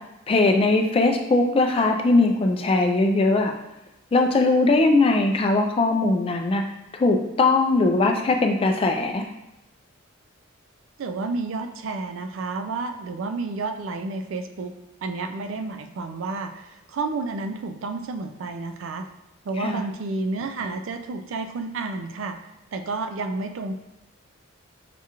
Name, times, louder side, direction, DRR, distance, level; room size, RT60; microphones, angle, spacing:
voice 1, 0.3-3.5 4.1-6.6 7.0-9.2 19.6-19.8, left 2 dB, 25° left, 4 dB, 0.3 m, -20 dB
voice 2, 11.0-14.7 15.0-19.0 19.5-22.4 22.7-23.7, right 3 dB, 65° right, 7 dB, 0.4 m, -30 dB
5.8 x 2.4 x 2.9 m, 0.91 s
head